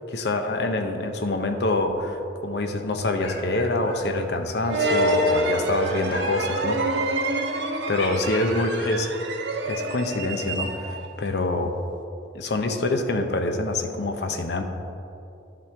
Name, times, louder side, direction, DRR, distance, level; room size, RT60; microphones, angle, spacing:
voice 1, 0.1-6.8 7.9-9.1 9.7-11.8 12.3-14.6, left 2 dB, 70° left, 5 dB, 0.7 m, -26 dB
sound 1, 2.9-4.6 4.9-5.7 6.1-7.3 7.9-9.0, left 3 dB, 90° left, 1.1 m, -39 dB
sound 2, 4.6-11.1, right 1 dB, 80° right, 0.8 m, -27 dB
10.5 x 6.1 x 4.6 m, 2.7 s
head